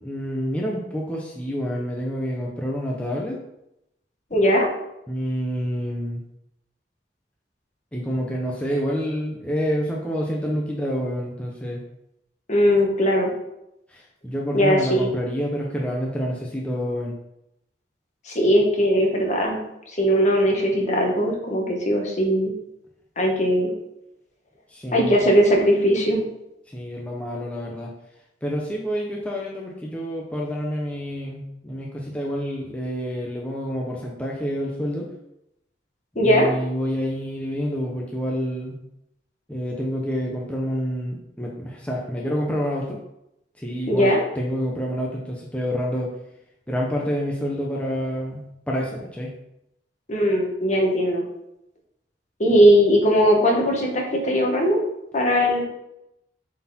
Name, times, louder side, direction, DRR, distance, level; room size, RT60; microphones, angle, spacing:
voice 1, 0.0-3.4 5.1-6.2 7.9-11.8 13.9-17.1 24.7-25.2 26.7-27.9 28.4-35.1 36.2-38.8 39.5-43.0 43.6-46.1 46.7-49.3, equal, 10° left, -2 dB, 0.8 m, -28 dB
voice 2, 4.3-4.7 12.5-13.3 14.5-15.1 18.3-19.6 20.0-22.5 23.2-23.7 24.9-26.2 36.1-36.5 43.9-44.2 50.1-51.2 52.4-54.8 55.1-55.6, equal, 45° left, 0 dB, 1.6 m, -19 dB
7.4 x 4.3 x 4.3 m, 0.84 s
head